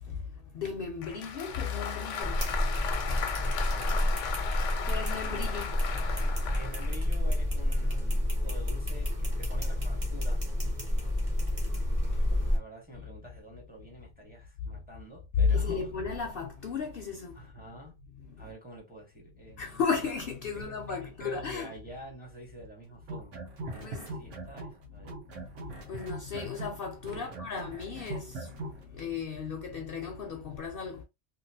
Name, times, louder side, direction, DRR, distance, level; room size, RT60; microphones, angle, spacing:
voice 1, 0.0-2.5 2.8-3.8 4.5-6.6 10.9-11.6 11.9-12.5 15.5-17.4 18.3-18.5 19.6-21.7 23.7-24.3 25.4-31.0, left 5 dB, 60° left, 0.7 m, -36 dB
Applause, 1.0-7.0, left 7 dB, 85° left, 0.9 m, -37 dB
sound 1, 2.2-12.6, left 1 dB, 30° right, 1.1 m, -29 dB
voice 2, 3.7-4.2 6.5-10.4 12.4-15.9 17.3-18.0 18.4-19.8 20.5-23.4 23.7-25.2 27.1-27.4, right 1 dB, 10° right, 0.8 m, -48 dB
sound 2, 23.0-24.8 25.1-28.8, right 2 dB, 85° right, 1.3 m, -40 dB
2.9 x 2.5 x 2.6 m
omnidirectional pair, 1.2 m